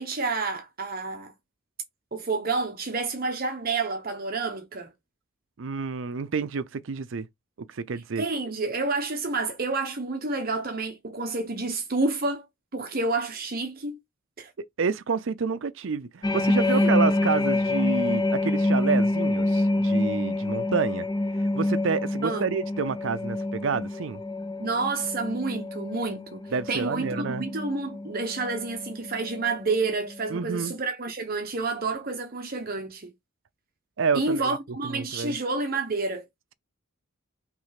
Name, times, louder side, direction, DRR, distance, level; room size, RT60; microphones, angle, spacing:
voice 1, 0.0-1.3 2.1-4.9 8.2-12.5 12.7-14.0 14.4-14.5 16.7-16.9 22.2-22.5 24.6-33.1 34.1-36.2, right 3 dB, 45° right, 1.0 m, -29 dB
voice 2, 5.6-7.3 7.7-8.2 14.8-21.1 21.5-24.2 26.5-27.5 30.3-30.7 34.0-34.5 34.8-35.3, right 5 dB, 65° right, 0.5 m, -29 dB
sound 1, 16.2-29.8 30.1-30.4, left 2 dB, 20° left, 0.5 m, -27 dB
6.0 x 3.2 x 5.7 m
head